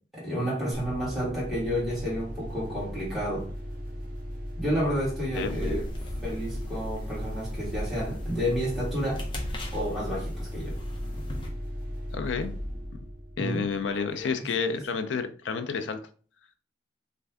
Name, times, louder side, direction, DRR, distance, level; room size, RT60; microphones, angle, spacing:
voice 1, 0.1-3.5 4.6-5.8 6.2-9.2 9.7-10.7 13.4-13.6 14.1-14.3, equal, ahead, 1.6 m, -30 dB
sound 1, 0.7-14.2, equal, 50° right, 0.8 m, -37 dB
sound 2, 5.3-11.5, left 1 dB, 25° left, 0.6 m, -39 dB
voice 2, 12.1-12.5 13.4-16.0, left 5 dB, 85° left, 0.5 m, -30 dB
3.3 x 2.6 x 3.5 m
head